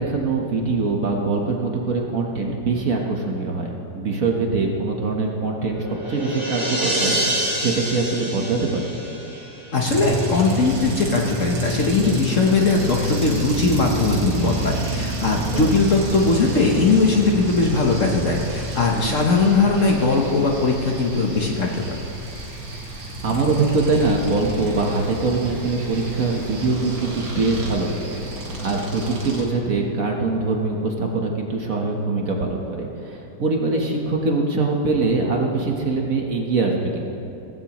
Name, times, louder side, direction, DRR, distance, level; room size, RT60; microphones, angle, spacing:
voice 1, 0.0-8.9 15.5-15.7 18.9-19.2 23.2-28.2 28.6-37.1, right 3 dB, 50° right, 0 dB, 1.4 m, -23 dB
sound 1, 5.3-9.9, right 1 dB, 15° right, 2.2 m, -27 dB
voice 2, 9.7-22.0, left 3 dB, 50° left, 0 dB, 1.2 m, -20 dB
sound 2, 9.8-29.4, right 1 dB, 75° right, 2.7 m, -29 dB
18.0 x 15.5 x 3.0 m, 2.9 s
omnidirectional pair, 2.1 m